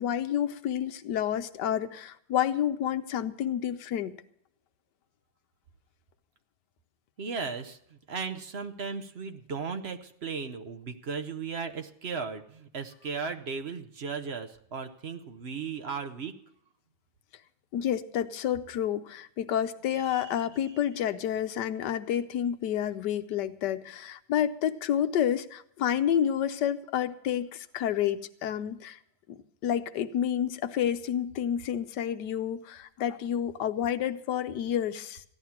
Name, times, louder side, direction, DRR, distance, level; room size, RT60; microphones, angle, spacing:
voice 1, 0.0-4.1 17.7-29.0 29.3-29.4 29.6-35.2, left 10 dB, 80° left, 10 dB, 1.4 m, -29 dB
voice 2, 7.2-16.4 19.9-20.7, right 5 dB, 45° right, 7 dB, 1.0 m, -36 dB
15.0 x 11.5 x 5.8 m, 0.68 s
omnidirectional pair, 1.8 m